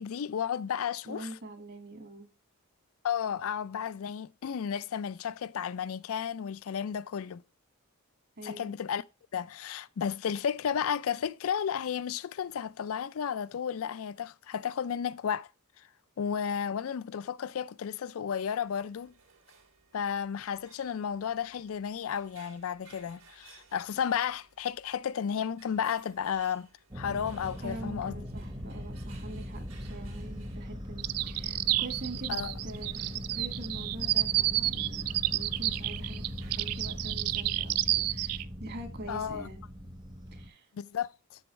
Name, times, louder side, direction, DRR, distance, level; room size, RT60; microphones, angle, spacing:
voice 1, 0.0-1.3 3.0-7.4 8.4-9.0 9.3-15.5 16.2-19.1 19.9-26.7 26.9-28.1 32.3-32.5 39.1-39.5 40.7-41.1, left 8 dB, 70° left, 0.4 m, -33 dB
voice 2, 1.1-2.3 8.4-8.8 27.6-32.4 32.6-39.6 40.3-40.7, right 1 dB, 45° right, 1.9 m, -44 dB
sound 1, 18.4-37.5, right 5 dB, 60° right, 2.7 m, -61 dB
sound 2, 26.9-40.5, equal, 20° right, 0.9 m, -40 dB
sound 3, 31.0-38.4, right 16 dB, 90° right, 0.4 m, -30 dB
7.8 x 7.1 x 3.0 m
head